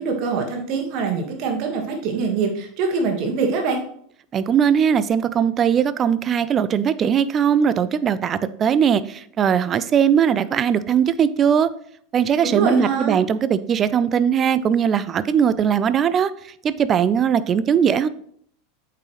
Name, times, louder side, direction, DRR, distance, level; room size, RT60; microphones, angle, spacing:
voice 1, 0.0-3.8 12.4-13.2, right 4 dB, 45° right, 3 dB, 1.6 m, -24 dB
voice 2, 4.3-11.7 12.1-16.3 16.6-18.1, right 8 dB, 30° right, 15 dB, 0.4 m, -19 dB
8.5 x 4.7 x 3.1 m, 0.64 s
figure-of-eight pair, 85°, 0 cm